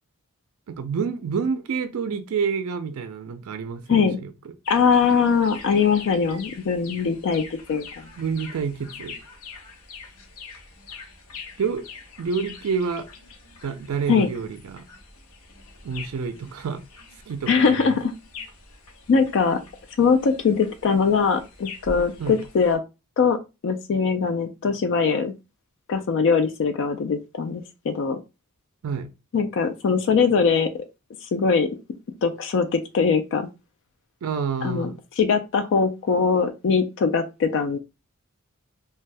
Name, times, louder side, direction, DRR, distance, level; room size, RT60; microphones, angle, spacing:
voice 1, 0.7-4.3 8.2-9.2 11.6-11.8 12.2-13.1 13.6-14.9 15.8-16.8 17.3-17.9 22.2-22.4 28.8-29.1 34.2-35.0, right 5 dB, 70° right, 0.4 m, -28 dB
voice 2, 3.9-4.2 4.7-7.4 7.7-8.0 14.1-14.3 17.5-18.1 19.1-19.6 20.0-22.8 23.2-23.4 23.6-25.3 25.9-28.2 29.3-30.7 31.2-31.7 32.2-33.5 34.6-34.9 35.2-37.8, left 5 dB, 55° left, 0.3 m, -21 dB
sound 1, 4.6-22.8, left 4 dB, 90° left, 0.9 m, -44 dB
2.6 x 2.2 x 3.2 m
head